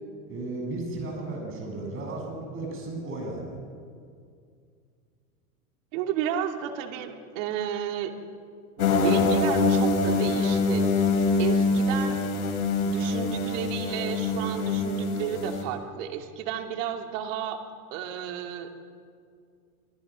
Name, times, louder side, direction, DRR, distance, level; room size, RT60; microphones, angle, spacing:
voice 1, 0.3-3.6, right 2 dB, 30° right, 1 dB, 7.7 m, -34 dB
voice 2, 5.9-8.1 8.8-10.8 11.4-12.2 12.8-17.6 17.9-18.7, right 9 dB, 55° right, 5 dB, 2.8 m, -32 dB
sound 1, 8.8-15.6, left 3 dB, 80° left, 4.7 m, -24 dB
27.5 x 18.0 x 6.3 m, 2.2 s
supercardioid pair, 130°, 45 cm